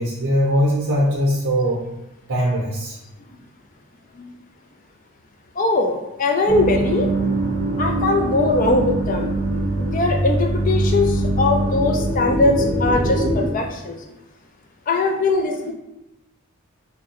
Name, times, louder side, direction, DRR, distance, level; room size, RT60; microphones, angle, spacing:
voice 1, 0.0-1.9 2.3-3.0, equal, 65° right, -5 dB, 0.6 m, -20 dB
voice 2, 5.6-7.1 7.8-9.3 9.8-14.0 14.9-15.7, left 3 dB, 35° left, 3 dB, 0.3 m, -20 dB
sound 1, 6.5-13.5, right 2 dB, 15° left, 0.8 m, -22 dB
3.5 x 2.1 x 2.9 m, 0.96 s
head